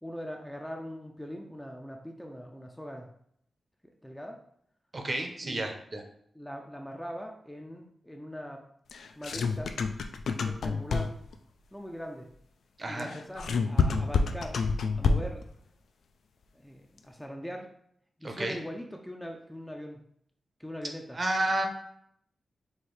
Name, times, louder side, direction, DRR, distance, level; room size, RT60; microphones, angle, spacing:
voice 1, 0.0-3.1 3.8-4.4 5.4-5.7 6.3-8.7 9.2-9.8 10.4-11.2 11.7-12.3 12.9-14.7 15.0-15.5 16.5-17.7 18.2-20.0 20.6-21.2, equal, 5° left, 1 dB, 0.4 m, -41 dB
voice 2, 4.9-6.0 12.8-13.1 18.2-18.6 21.1-21.7, right 1 dB, 35° right, 4 dB, 0.6 m, -31 dB
sound 1, 8.9-11.3 13.0-15.5, left 4 dB, 85° left, 0.3 m, -28 dB
4.3 x 2.7 x 3.2 m, 0.69 s
wide cardioid pair, 115°, 0 cm